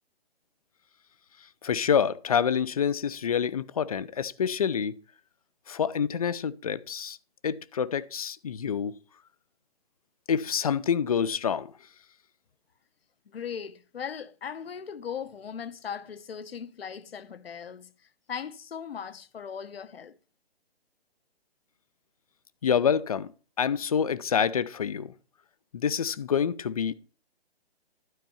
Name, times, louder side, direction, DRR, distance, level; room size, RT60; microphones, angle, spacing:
voice 1, 1.6-5.0 5.7-7.2 7.4-8.9 10.3-11.7 22.6-23.3 23.6-25.1 25.7-26.9, left 7 dB, 35° left, 0.5 m, -27 dB
voice 2, 13.3-17.9 18.3-20.1, left 7 dB, 65° left, 1.1 m, -38 dB
12.5 x 4.4 x 7.1 m
hypercardioid pair, 150°, 32 cm